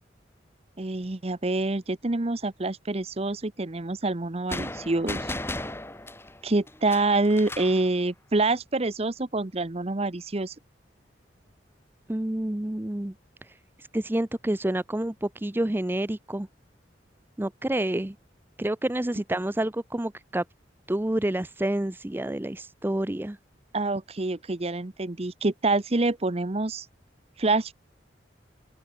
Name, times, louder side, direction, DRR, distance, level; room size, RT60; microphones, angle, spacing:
voice 1, 0.8-5.3 6.4-10.5 23.7-26.9 27.4-27.7, right 2 dB, 35° right, 0.9 m, -26 dB
sound 1, 4.5-7.8, left 1 dB, 15° left, 2.6 m, -35 dB
voice 2, 12.1-13.1 13.9-16.5 17.4-18.1 18.6-20.4 20.9-23.4, right 1 dB, 10° right, 0.5 m, -28 dB
open air
head